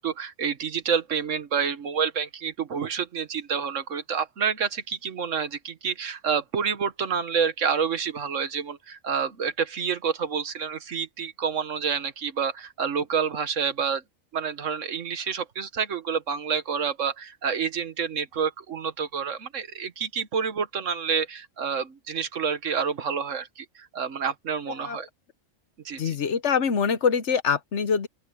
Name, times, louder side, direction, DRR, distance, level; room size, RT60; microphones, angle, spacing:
voice 1, 0.0-14.0 14.3-25.1 25.8-26.2, right 6 dB, 65° right, 1.5 m, -28 dB
voice 2, 26.0-28.1, left 6 dB, 60° left, 1.2 m, -24 dB
open air
omnidirectional pair, 1.4 m